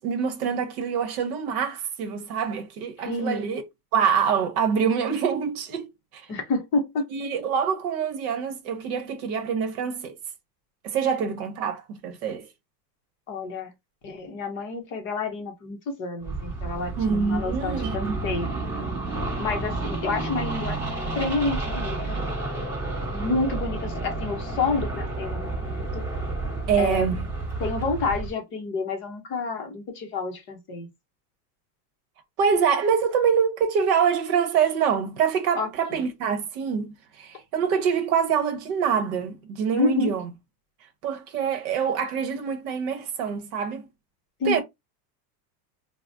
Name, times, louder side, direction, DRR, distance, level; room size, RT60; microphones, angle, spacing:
voice 1, 0.0-3.6 3.9-6.3 7.1-10.2 10.8-12.5 17.0-18.2 22.7-22.8 26.7-27.3 32.4-40.3 41.0-43.9 44.5-44.6, right 7 dB, 60° right, 0.9 m, -25 dB
voice 2, 3.1-3.5 6.3-7.1 13.3-13.7 14.0-18.5 19.4-20.8 21.2-22.2 23.1-26.0 26.8-27.1 27.6-30.9 35.6-36.0 39.7-40.1 44.4-44.6, left 3 dB, 25° left, 0.6 m, -29 dB
sound 1, 16.2-28.3, right 2 dB, 5° right, 1.0 m, -30 dB
4.6 x 2.0 x 2.5 m
supercardioid pair, 175°, 50 cm